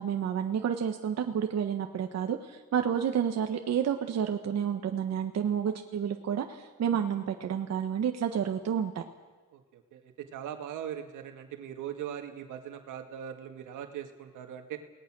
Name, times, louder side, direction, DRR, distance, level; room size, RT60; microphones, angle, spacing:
voice 1, 0.0-9.0, right 8 dB, 60° right, 5 dB, 1.4 m, -30 dB
voice 2, 9.5-14.8, right 9 dB, 85° right, 5 dB, 2.1 m, -40 dB
28.5 x 19.0 x 6.2 m, 1.3 s
cardioid pair, 90°, 30 cm